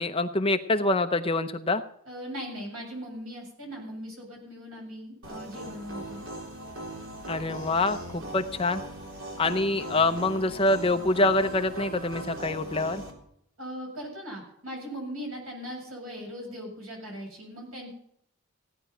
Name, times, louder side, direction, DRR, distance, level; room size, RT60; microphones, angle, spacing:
voice 1, 0.0-1.8 7.3-8.8 9.4-13.0, left 2 dB, 25° left, 8 dB, 0.7 m, -25 dB
voice 2, 2.1-6.2 13.6-17.9, equal, 85° right, 0 dB, 7.5 m, -39 dB
sound 1, 5.2-13.1, right 1 dB, 65° right, 3.2 m, -39 dB
17.0 x 10.0 x 5.6 m, 0.72 s
head